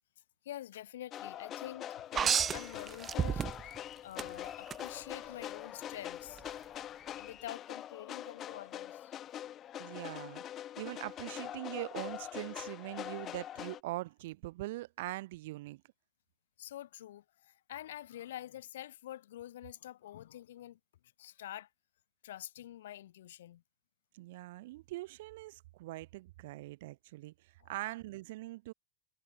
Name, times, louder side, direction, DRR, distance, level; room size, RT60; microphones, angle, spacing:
voice 1, 0.4-6.7 7.2-9.2 16.6-20.8 21.2-21.7 22.2-23.6 27.6-27.7, left 13 dB, 60° left, 2.1 m, -47 dB
sound 1, 1.1-13.8, left 11 dB, 30° left, 0.6 m, -44 dB
sound 2, 2.1-3.8 4.2-4.8 6.4-6.5, right 8 dB, 20° right, 0.3 m, -31 dB
voice 2, 9.8-10.4 10.8-15.8 24.1-28.7, right 18 dB, 50° right, 1.5 m, -42 dB
figure-of-eight pair, 90°, 0 cm